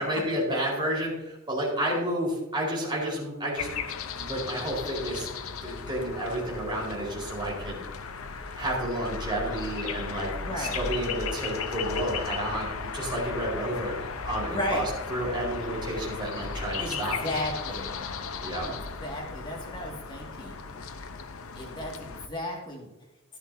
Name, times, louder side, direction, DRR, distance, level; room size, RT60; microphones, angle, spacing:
voice 1, 0.0-3.7 4.1-5.3 5.6-7.8 8.5-14.8 15.1-17.3 18.4-18.7, right 1 dB, 20° right, -5 dB, 4.6 m, -31 dB
sound 1, 3.6-22.3, left 5 dB, 80° left, 0.8 m, -36 dB
voice 2, 10.4-10.8 14.5-14.9 16.4-16.5 16.8-17.9 18.6-18.7 19.0-20.6 21.6-22.9, left 1 dB, 25° left, -1 dB, 2.2 m, -34 dB
12.5 x 12.5 x 2.8 m, 0.96 s
head